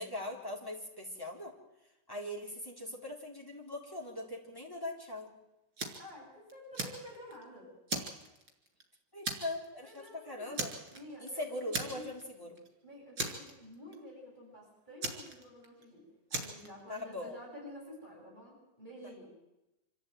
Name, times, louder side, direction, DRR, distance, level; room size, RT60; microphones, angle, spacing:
voice 1, 0.0-1.5 2.1-5.3 9.1-10.7 11.2-12.6 16.9-17.3, left 1 dB, 10° left, -2 dB, 4.0 m, -41 dB
Fire, 5.8-6.1 6.5-7.4 7.9-8.8 9.2-9.7 9.9-10.1 10.5-11.3 11.7-12.3 12.6-12.7 13.2-14.0 15.0-15.8 16.3-16.7, right 3 dB, 75° right, 3.9 m, -37 dB
voice 2, 6.0-7.7 9.8-11.5 11.8-12.1 12.8-19.3, equal, 25° right, -4 dB, 7.9 m, -50 dB
26.0 x 14.0 x 9.2 m, 0.96 s
omnidirectional pair, 2.0 m